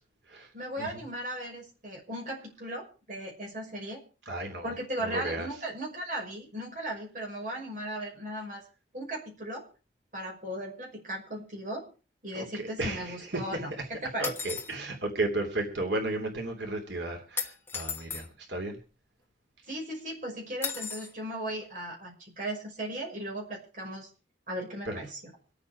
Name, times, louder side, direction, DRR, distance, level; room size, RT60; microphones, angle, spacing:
voice 1, 0.5-4.0 4.6-8.6 8.9-9.6 10.1-11.9 12.2-14.3 19.7-24.1 24.5-25.2, right 1 dB, 45° right, -1 dB, 5.8 m, -37 dB
voice 2, 4.3-4.7 5.0-5.5 12.3-13.6 14.2-18.8 24.8-25.0, right 2 dB, 90° right, 2 dB, 3.0 m, -34 dB
sound 1, 14.2-14.7 17.4-18.3 20.6-21.1, left 5 dB, 15° left, 1.3 m, -35 dB
25.5 x 8.6 x 4.8 m, 0.35 s
head